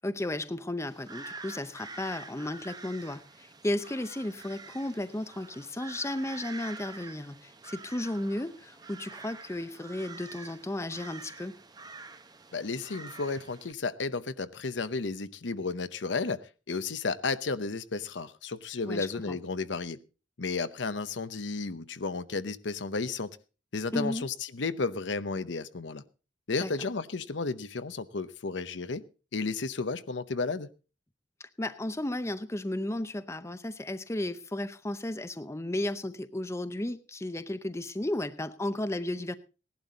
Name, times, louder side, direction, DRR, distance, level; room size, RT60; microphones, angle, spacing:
voice 1, 0.0-11.5 18.9-19.4 23.9-24.2 26.6-26.7 31.4-39.3, left 1 dB, 15° left, 12 dB, 0.6 m, -34 dB
sound 1, 0.8-13.7, right 4 dB, 20° right, 0.8 m, -47 dB
voice 2, 12.5-16.4 16.7-20.0 20.4-23.3 23.7-26.0 26.5-29.0 29.3-30.7, left 4 dB, 75° left, 13 dB, 0.8 m, -33 dB
17.0 x 11.5 x 4.0 m, 0.33 s
head